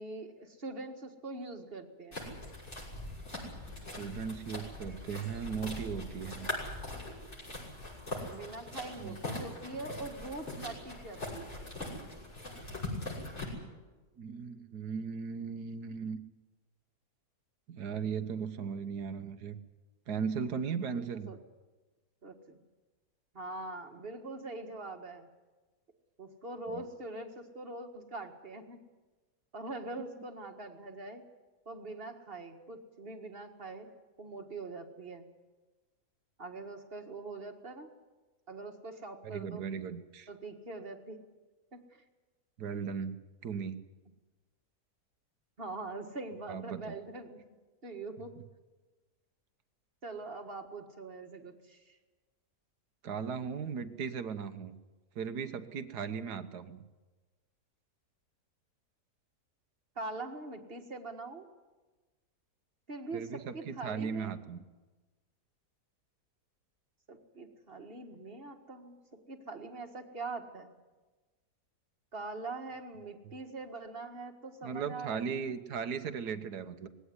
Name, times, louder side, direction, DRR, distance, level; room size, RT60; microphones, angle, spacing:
voice 1, 0.0-2.3 8.3-11.5 20.9-21.4 22.2-22.6 23.3-25.3 26.2-28.8 29.5-31.2 31.7-33.9 34.2-35.3 36.4-37.9 38.5-39.6 40.3-41.2 41.7-41.8 45.6-47.4 47.8-48.3 50.0-52.0 60.0-61.5 62.9-64.3 67.1-70.7 72.1-75.4, right 3 dB, 35° right, 5 dB, 1.9 m, -43 dB
sound 1, 2.1-13.5, left 2 dB, 45° left, 6.5 m, -41 dB
voice 2, 4.0-6.5 9.0-9.2 14.2-16.2 17.7-19.6 20.1-21.3 26.7-26.8 39.2-40.3 42.6-43.8 46.5-47.0 53.0-54.8 55.2-56.8 63.1-64.6 74.6-76.9, right 6 dB, 75° right, 10 dB, 1.7 m, -37 dB
20.0 x 16.5 x 9.8 m, 1.2 s
omnidirectional pair, 1.7 m